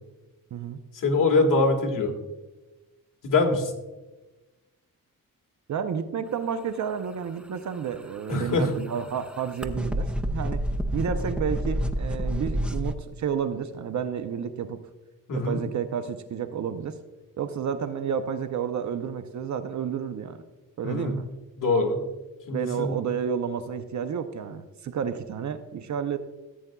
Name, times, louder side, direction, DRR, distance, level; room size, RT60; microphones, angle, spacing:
voice 1, 0.9-2.1 3.2-3.7 8.3-8.7 15.3-15.6 20.8-21.2 21.6-22.0 22.5-22.9, left 3 dB, 65° left, 1 dB, 1.8 m, -23 dB
voice 2, 5.7-10.6 10.9-14.8 15.3-17.0 17.4-20.4 20.8-21.3 22.5-26.2, right 7 dB, 55° right, 9 dB, 0.6 m, -31 dB
sound 1, 7.8-12.9, equal, 5° right, 0.4 m, -29 dB
14.5 x 8.5 x 2.3 m, 1.1 s
wide cardioid pair, 145°, 34 cm